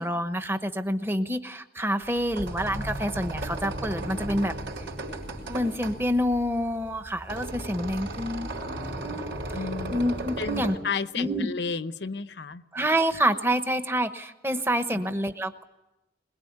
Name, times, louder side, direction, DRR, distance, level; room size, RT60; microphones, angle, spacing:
voice 1, 0.0-4.5 5.5-9.4 9.9-10.8 11.2-11.5 12.7-15.6, equal, 10° right, 9 dB, 1.0 m, -27 dB
sound 1, 2.0-10.8, right 1 dB, 80° right, 4.4 m, -35 dB
voice 2, 9.5-10.0 10.4-12.6 14.9-15.0, left 5 dB, 70° left, 12 dB, 0.8 m, -32 dB
22.0 x 21.5 x 9.6 m, 1.0 s
head